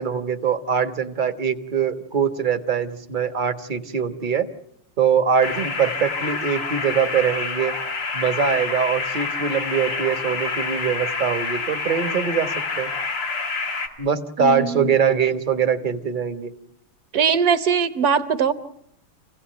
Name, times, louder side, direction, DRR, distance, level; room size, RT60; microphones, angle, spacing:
voice 1, 0.0-4.5 5.0-7.7 8.1-12.9 14.0-16.5, right 7 dB, 30° right, 10 dB, 1.1 m, -23 dB
sound 1, 5.4-13.9, left 4 dB, 90° left, 3.6 m, -28 dB
voice 2, 14.4-14.9 17.1-18.5, right 7 dB, 50° right, 11 dB, 1.6 m, -21 dB
28.5 x 17.0 x 9.2 m, 0.75 s
omnidirectional pair, 2.3 m